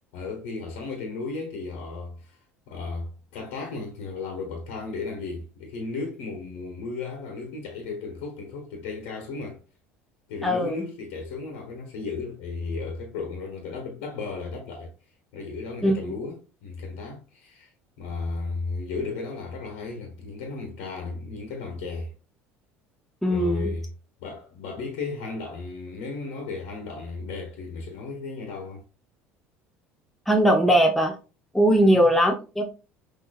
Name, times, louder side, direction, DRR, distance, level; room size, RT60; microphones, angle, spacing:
voice 1, 0.1-2.4 2.7-9.6 10.3-14.9 15.3-17.7 18.0-22.1 23.3-23.9 24.2-28.8 31.8-32.1, left 4 dB, 70° left, 1.3 m, -34 dB
voice 2, 10.4-10.8 15.8-16.1 23.2-23.7 30.3-31.1 31.5-32.6, equal, ahead, 0.9 m, -20 dB
6.2 x 3.0 x 2.4 m
hypercardioid pair, 70°, 7 cm